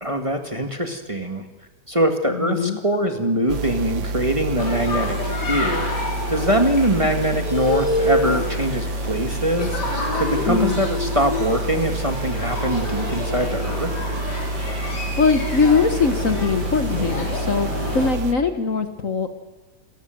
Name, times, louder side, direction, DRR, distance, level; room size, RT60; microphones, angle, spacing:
voice 1, 0.0-1.4 1.9-5.9 6.3-9.8 10.1-13.9, right 1 dB, 20° right, 5 dB, 1.7 m, -23 dB
voice 2, 2.3-2.8 10.5-10.8 14.9-19.3, left 5 dB, 50° left, 9 dB, 1.5 m, -21 dB
sound 1, 3.5-18.3, right 2 dB, 65° right, 1.5 m, -28 dB
sound 2, 4.6-18.1, left 2 dB, 65° left, 4.3 m, -28 dB
28.5 x 14.0 x 7.7 m, 1.2 s
omnidirectional pair, 2.0 m